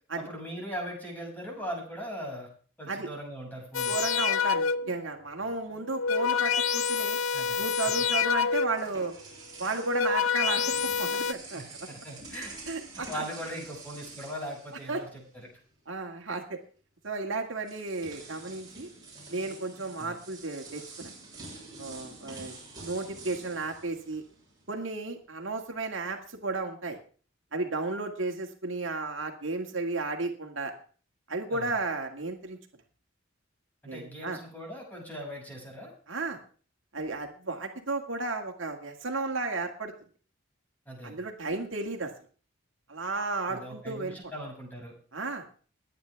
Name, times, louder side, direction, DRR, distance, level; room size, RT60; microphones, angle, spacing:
voice 1, 0.2-2.5 2.8-4.0 7.3-7.6 11.5-12.5 13.1-15.1 20.0-20.2 31.5-31.7 33.8-35.9 40.9-41.2 43.5-44.9, equal, 10° left, -1 dB, 6.5 m, -39 dB
sound 1, 3.7-5.0 5.8-8.9 9.7-11.3, left 6 dB, 90° left, 0.8 m, -27 dB
voice 2, 3.9-7.2 7.6-9.1 9.6-11.6 12.7-13.2 14.9-15.0 15.9-16.6 17.0-18.9 19.3-21.1 21.8-24.2 24.7-27.0 27.5-30.7 31.3-32.6 33.9-34.4 36.1-36.4 36.9-39.9 41.0-42.1 42.9-44.2 45.1-45.5, right 3 dB, 65° right, 3 dB, 2.0 m, -33 dB
sound 2, 8.2-15.4 15.7-15.9 17.0-17.1 17.6-24.8, right 3 dB, 20° right, 7.7 m, -47 dB
22.0 x 9.4 x 3.5 m, 0.40 s
head